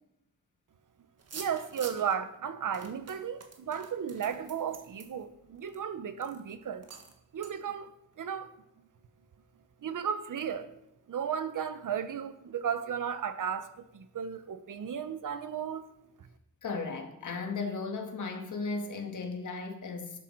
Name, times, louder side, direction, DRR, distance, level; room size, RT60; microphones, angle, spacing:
sound 1, 1.2-2.1 2.7-5.8 6.2-6.4 6.8-7.2 7.4-7.5, right 5 dB, 55° right, 1.7 m, -47 dB
voice 1, 1.3-6.9 7.3-8.5 9.8-10.7 11.1-15.8, right 8 dB, 85° right, 1.1 m, -34 dB
voice 2, 16.6-20.2, left 4 dB, 75° left, 2.1 m, -36 dB
12.0 x 11.5 x 4.7 m
wide cardioid pair, 145°, 31 cm